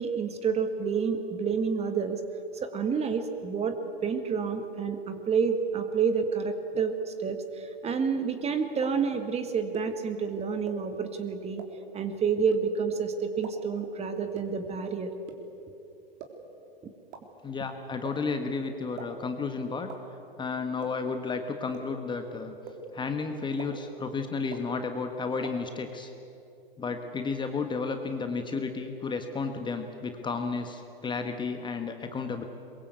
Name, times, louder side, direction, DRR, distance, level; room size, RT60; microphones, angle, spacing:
voice 1, 0.0-2.2 2.5-11.6 11.9-15.2, right 6 dB, 20° right, 8 dB, 1.9 m, -29 dB
sound 1, 8.8-8.9 9.7-9.8 10.7-10.8 11.6-11.7 12.5-12.6 13.4-13.5 14.3-14.4 15.3-15.4 16.2-16.3 17.1-17.2 18.0-18.1 19.0-19.1 19.9-20.0 20.8-20.9 21.7-21.8 22.7-22.8 23.6-23.7 24.5-24.6 25.4-25.5, right 10 dB, 45° right, 3.5 m, -40 dB
voice 2, 17.4-19.9 20.4-22.6 22.9-26.1 26.8-32.4, left 4 dB, 15° left, 6 dB, 1.5 m, -32 dB
22.5 x 22.5 x 8.2 m, 2.8 s
hypercardioid pair, 120°, 30 cm